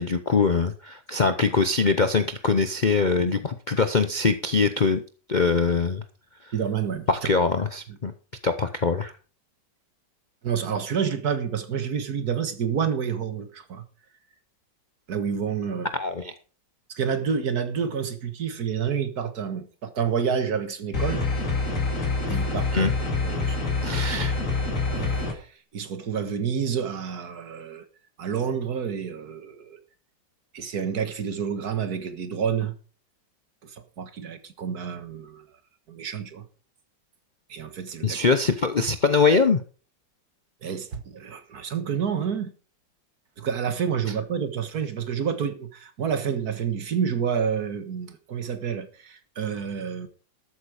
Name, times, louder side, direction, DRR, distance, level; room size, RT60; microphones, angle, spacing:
voice 1, 0.0-5.0 5.3-6.0 6.4-6.5 7.1-8.1 8.4-9.1 15.9-16.3 22.7-22.9 23.8-24.3 38.0-39.6, left 4 dB, 60° left, 0.4 m, -23 dB
voice 2, 6.5-7.1 10.4-13.8 15.1-15.9 16.9-21.3 22.3-22.9 23.2-23.9 24.9-27.9 28.2-29.8 30.5-32.7 33.6-35.5 35.9-36.4 37.5-38.2 40.6-42.5 43.4-50.1, right 7 dB, 55° right, 1.9 m, -29 dB
sound 1, 20.9-25.3, left 3 dB, 45° left, 2.8 m, -26 dB
13.0 x 8.5 x 4.9 m
omnidirectional pair, 2.0 m